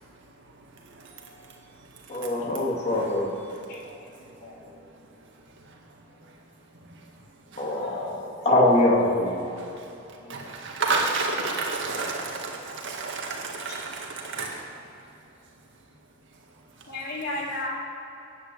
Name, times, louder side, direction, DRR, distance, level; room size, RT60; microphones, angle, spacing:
voice 1, 2.1-3.3 7.6-8.1 8.4-9.4, left 1 dB, 35° left, -2 dB, 2.2 m, -22 dB
voice 2, 3.7-4.8 10.2-10.8 16.9-17.7, left 2 dB, 55° left, -3 dB, 2.5 m, -36 dB
voice 3, 10.3-14.5, right 3 dB, 65° right, -1 dB, 1.9 m, -29 dB
9.9 x 8.8 x 8.4 m, 2.9 s
head